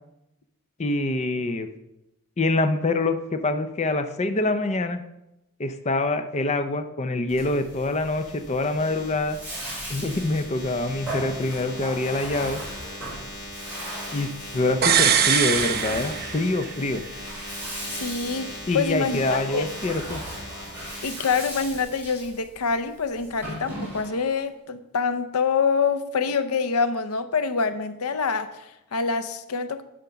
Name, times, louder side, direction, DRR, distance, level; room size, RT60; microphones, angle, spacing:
voice 1, 0.8-1.7 2.4-5.0 5.6-9.4 9.9-12.6 14.1-14.3 14.5-17.0 18.7-20.2, left 2 dB, 30° left, 0.5 m, -25 dB
sound 1, 7.3-21.8, left 1 dB, 55° left, 3.7 m, -40 dB
Bathtub (filling or washing), 9.2-24.3, right 1 dB, 10° right, 4.1 m, -38 dB
sound 2, 14.8-16.7 17.0-17.1, right 8 dB, 45° right, 0.7 m, -22 dB
voice 2, 17.9-19.7 21.0-29.8, left 5 dB, 85° left, 0.7 m, -26 dB
10.5 x 5.1 x 5.7 m
head